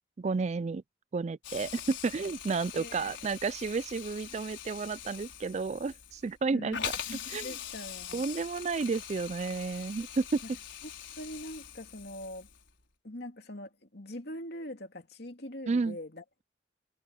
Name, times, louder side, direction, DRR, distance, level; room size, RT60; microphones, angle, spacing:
voice 1, 0.2-0.8 1.1-6.8 7.3-7.5 8.1-10.4 15.7-16.0, right 4 dB, 35° right, 0.3 m, -31 dB
Hiss, 1.4-12.7, left 9 dB, 75° left, 4.8 m, -43 dB
voice 2, 2.7-3.3 6.5-8.3 11.2-12.5 13.0-16.2, left 1 dB, 55° left, 2.8 m, -43 dB
head